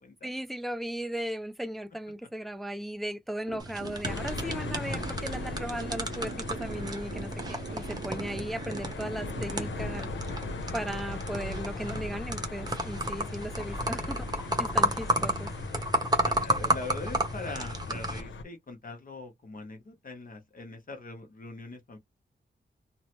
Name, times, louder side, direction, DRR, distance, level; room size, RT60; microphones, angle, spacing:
voice 1, 0.2-10.1 10.7-15.5, right 1 dB, ahead, 0.3 m, -37 dB
sound 1, 3.5-11.8, right 5 dB, 60° right, 0.6 m, -43 dB
sound 2, 3.6-18.2, right 1 dB, 20° right, 0.8 m, -33 dB
sound 3, 4.0-18.4, left 3 dB, 85° left, 0.7 m, -39 dB
voice 2, 16.2-22.0, left 3 dB, 45° left, 0.8 m, -42 dB
3.1 x 2.0 x 2.9 m
wide cardioid pair, 130°, 19 cm